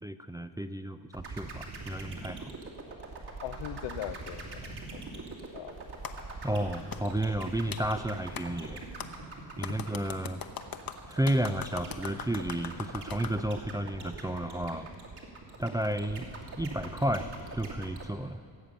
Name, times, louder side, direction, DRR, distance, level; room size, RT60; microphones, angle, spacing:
voice 1, 0.0-2.5 6.4-8.8 9.6-10.4 11.1-14.9 15.6-16.3 16.6-18.4, right 1 dB, 10° right, 9 dB, 0.4 m, -32 dB
sound 1, 1.1-18.1, right 3 dB, 55° right, 2.8 m, -42 dB
voice 2, 3.4-5.8, left 11 dB, 70° left, 13 dB, 0.7 m, -41 dB
Clapping, 6.0-6.2 6.9-7.0 7.7-7.8 8.4-8.5 9.0-9.1 9.6-13.4, left 7 dB, 45° left, 1.0 m, -40 dB
17.0 x 7.3 x 6.8 m, 2.4 s
supercardioid pair, 65°, 48 cm